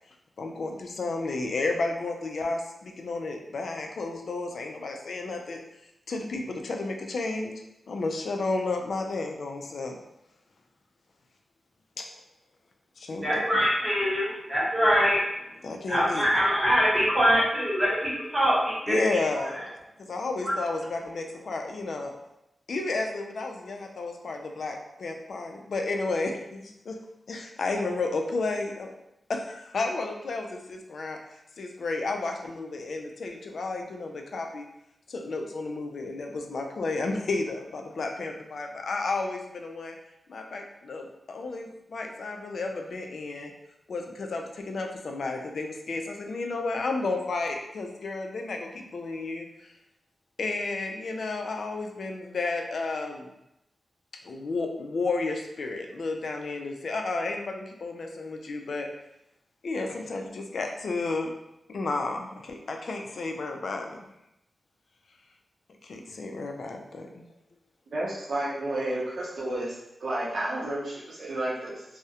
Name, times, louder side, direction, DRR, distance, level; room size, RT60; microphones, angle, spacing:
voice 1, 0.4-5.6 6.1-7.5 7.9-10.0 12.0-12.1 13.0-13.3 15.6-16.2 18.9-19.6 20.0-22.1 22.7-26.9 27.3-28.9 29.3-34.7 35.1-39.9 40.3-43.5 43.9-49.7 50.4-53.3 54.2-58.9 59.6-61.3 61.7-64.0 65.8-67.2, left 3 dB, 70° left, 3 dB, 0.3 m, -32 dB
voice 2, 13.1-15.2 15.9-19.0 20.4-20.5, equal, 20° right, -8 dB, 1.0 m, -23 dB
voice 3, 67.9-71.8, right 1 dB, 70° right, -6 dB, 0.6 m, -31 dB
2.3 x 2.0 x 2.7 m, 0.85 s
wide cardioid pair, 115°, 0 cm